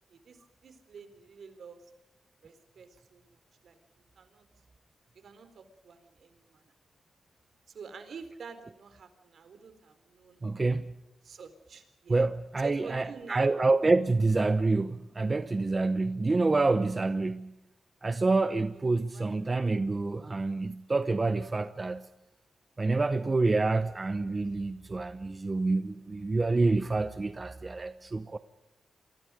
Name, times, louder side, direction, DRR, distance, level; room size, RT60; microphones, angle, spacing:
voice 1, 0.1-1.8 2.4-3.8 4.1-4.4 5.1-6.7 7.7-10.4 11.2-12.2 12.6-13.5 19.0-19.3, right 5 dB, 70° right, 4.2 m, -48 dB
voice 2, 10.4-10.9 12.1-17.5 18.0-22.1 22.8-28.4, right 3 dB, 30° right, 1.0 m, -27 dB
29.5 x 24.5 x 5.1 m
cardioid pair, 80°, 0 cm